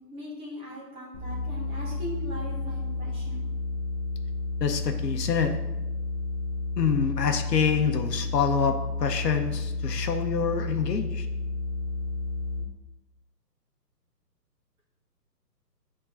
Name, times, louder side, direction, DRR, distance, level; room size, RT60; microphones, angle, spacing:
voice 1, 0.0-3.5, equal, 10° right, -5 dB, 1.3 m, -40 dB
sound 1, 1.1-12.6, left 2 dB, 10° left, 0.5 m, -31 dB
voice 2, 4.6-5.5 6.8-11.3, left 6 dB, 75° left, 6 dB, 1.0 m, -26 dB
9.9 x 3.8 x 3.9 m, 1.0 s
hypercardioid pair, 145°, 50 cm